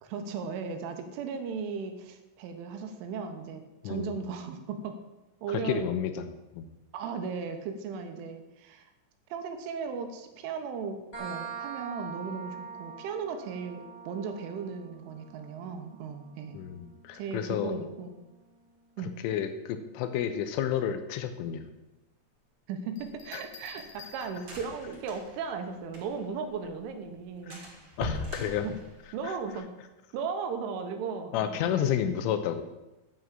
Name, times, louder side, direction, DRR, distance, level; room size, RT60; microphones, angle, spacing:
voice 1, 0.0-5.0 5.4-5.8 6.9-8.9 9.3-16.6 17.1-18.2 19.0-19.2 22.7-27.7 28.6-28.8 29.1-29.7 30.1-32.0, right 5 dB, 80° right, 6 dB, 3.5 m, -36 dB
voice 2, 5.5-6.2 6.5-6.7 16.5-17.8 19.2-21.7 23.3-23.4 27.5-27.6 28.0-28.7 31.3-32.6, left 9 dB, 85° left, 9 dB, 3.4 m, -30 dB
sound 1, 11.1-18.5, right 6 dB, 25° left, 1.2 m, -44 dB
sound 2, 23.0-24.9 26.5-26.9, left 4 dB, 60° left, 1.6 m, -50 dB
sound 3, 23.0-26.4 26.7-26.8 27.1-27.2 27.5-29.6, left 1 dB, 40° right, 2.5 m, -41 dB
9.6 x 8.0 x 7.5 m, 1.0 s
omnidirectional pair, 5.6 m